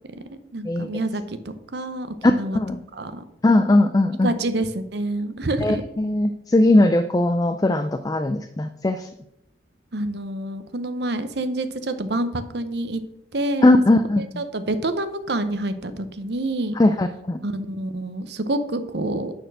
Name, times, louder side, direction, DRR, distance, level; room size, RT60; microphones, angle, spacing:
voice 1, 0.3-2.6 2.9-3.2 4.2-5.8 9.9-13.0 13.3-13.7 14.2-16.8 17.4-19.3, right 2 dB, 55° right, 10 dB, 0.7 m, -27 dB
voice 2, 2.2-2.8 3.4-4.3 5.6-9.1 13.6-14.2 16.8-17.4, left 2 dB, 20° left, 9 dB, 0.3 m, -19 dB
9.2 x 4.3 x 6.1 m, 0.81 s
head